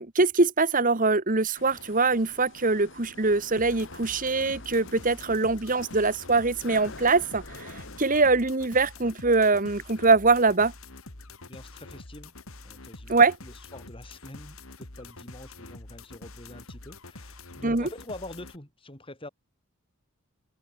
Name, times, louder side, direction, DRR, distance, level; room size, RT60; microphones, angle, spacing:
voice 1, 0.0-10.7 13.1-13.3 17.6-17.9, right 3 dB, 40° right, 1.5 m, -23 dB
sound 1, 1.6-8.0, left 2 dB, 60° left, 5.4 m, -47 dB
sound 2, 3.6-18.6, left 2 dB, 75° left, 3.3 m, -46 dB
voice 2, 11.5-12.3 12.6-19.3, left 1 dB, 25° left, 4.0 m, -45 dB
open air
head